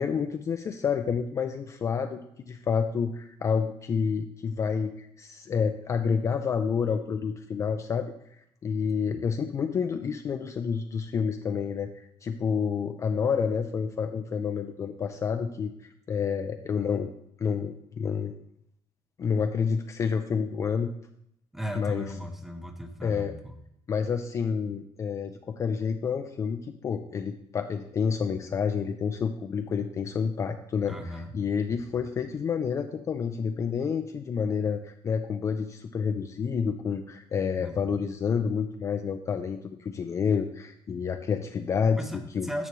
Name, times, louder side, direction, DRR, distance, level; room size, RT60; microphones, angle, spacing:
voice 1, 0.0-2.2 2.5-8.1 8.6-17.1 17.4-18.3 19.2-20.9 21.8-22.0 23.0-23.3 23.9-26.6 26.8-42.0 42.3-42.5, left 6 dB, 30° left, 7 dB, 0.4 m, -29 dB
voice 2, 21.5-23.6 30.9-31.3 37.6-37.9 42.0-42.7, equal, 5° right, 5 dB, 0.7 m, -37 dB
11.0 x 7.1 x 3.1 m, 0.74 s
cardioid pair, 165°, 11 cm